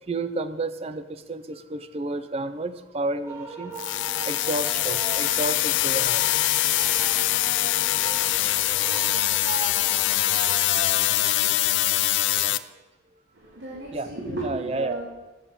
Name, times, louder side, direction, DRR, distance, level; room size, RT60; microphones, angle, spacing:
voice 1, 0.1-12.0 12.3-12.6 13.9-14.1 14.4-15.0, right 2 dB, 30° right, 12 dB, 0.4 m, -33 dB
sound 1, 3.3-10.6, right 3 dB, 15° right, 1.1 m, -40 dB
sound 2, 3.8-12.6, left 15 dB, 70° left, 0.3 m, -23 dB
voice 2, 13.3-15.1, right 2 dB, 80° right, -5 dB, 2.2 m, -34 dB
7.4 x 7.2 x 6.7 m, 1.1 s
head